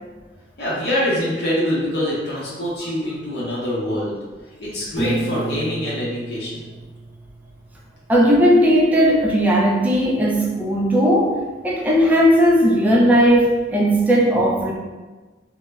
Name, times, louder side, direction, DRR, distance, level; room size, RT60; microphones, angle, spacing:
voice 1, 0.6-4.2 4.6-6.7, equal, 65° left, -8 dB, 0.7 m, -24 dB
Piano, 5.0-7.9, right 2 dB, 15° left, 0.8 m, -31 dB
voice 2, 8.1-11.4 11.6-14.7, equal, 10° right, -3 dB, 0.3 m, -16 dB
2.1 x 2.0 x 3.4 m, 1.3 s
head